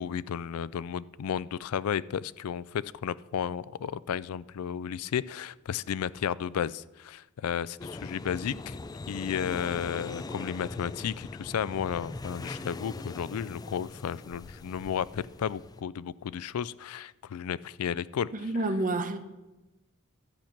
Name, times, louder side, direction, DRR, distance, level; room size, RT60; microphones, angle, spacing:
voice 1, 0.0-8.8 9.1-18.3, left 8 dB, 85° left, 0.4 m, -33 dB
sound 1, 7.8-15.8, left 2 dB, 20° left, 0.3 m, -41 dB
voice 2, 18.3-19.2, right 2 dB, 40° right, 0.8 m, -29 dB
12.0 x 5.8 x 8.6 m
head